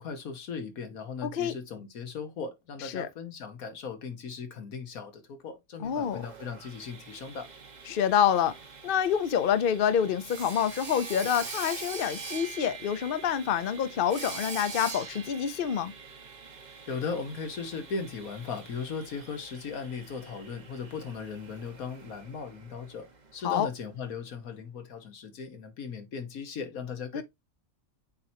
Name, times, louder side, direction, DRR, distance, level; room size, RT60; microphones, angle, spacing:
voice 1, 0.0-7.5 16.9-27.2, left 5 dB, 80° left, 1.7 m, -38 dB
voice 2, 1.2-1.5 2.8-3.1 5.8-6.2 7.9-8.6 8.8-15.9 23.4-23.7 27.1-27.2, left 8 dB, 50° left, 0.7 m, -27 dB
Sawing, 5.8-23.7, right 5 dB, 35° right, 0.9 m, -44 dB
7.8 x 4.5 x 2.8 m
omnidirectional pair, 1.5 m